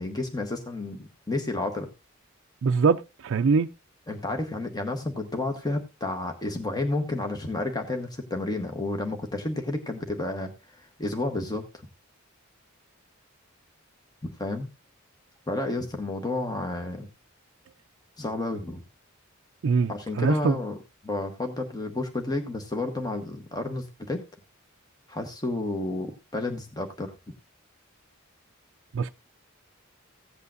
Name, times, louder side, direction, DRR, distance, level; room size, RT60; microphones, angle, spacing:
voice 1, 0.0-1.9 4.1-11.6 14.2-14.7 15.5-17.1 18.2-18.8 19.9-20.8 21.0-24.2 25.1-27.1, left 2 dB, 20° left, 1.0 m, -31 dB
voice 2, 2.6-3.7 19.6-20.6 28.9-29.1, right 5 dB, 60° right, 0.4 m, -23 dB
15.5 x 8.2 x 2.5 m
head